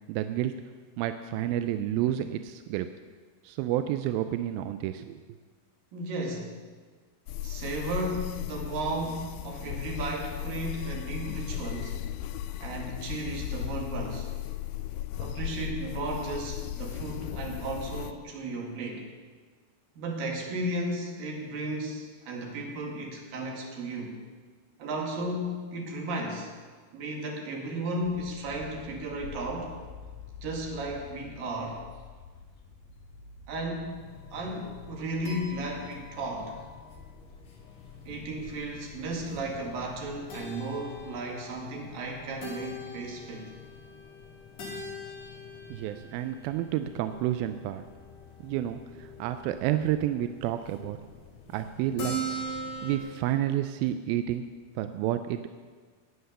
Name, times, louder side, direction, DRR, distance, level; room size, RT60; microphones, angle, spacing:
voice 1, 0.1-0.5 1.0-2.9 3.4-5.2 45.7-47.8 48.4-51.0 51.5-52.2 52.8-54.5 54.8-55.5, right 12 dB, 80° right, 9 dB, 2.2 m, -30 dB
voice 2, 5.9-6.6 7.4-12.0 12.6-14.3 15.2-19.1 20.0-24.2 24.8-26.5 26.9-29.7 30.4-31.8 33.5-36.6 38.1-43.5, right 1 dB, 60° right, 0 dB, 3.7 m, -34 dB
sound 1, 7.3-18.1, left 11 dB, 85° left, 2.2 m, -36 dB
sound 2, 28.0-40.3, left 4 dB, 65° left, 2.8 m, -49 dB
sound 3, 33.9-53.0, right 1 dB, 50° left, 2.8 m, -42 dB
19.0 x 8.0 x 6.7 m, 1.5 s
omnidirectional pair, 4.7 m